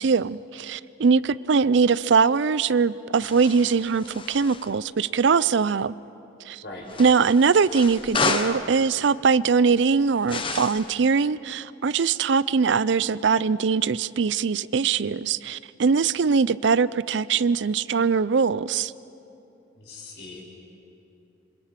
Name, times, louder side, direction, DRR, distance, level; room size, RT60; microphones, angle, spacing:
voice 1, 0.0-5.9 6.5-6.6 7.0-18.9, right 5 dB, 65° right, 18 dB, 0.4 m, -22 dB
sound 1, 3.2-4.7 6.9-8.7 10.3-10.9, left 4 dB, 25° left, 0.9 m, -31 dB
voice 2, 19.7-20.4, left 3 dB, 60° left, -1 dB, 5.5 m, -40 dB
26.5 x 26.5 x 5.9 m, 2.9 s
head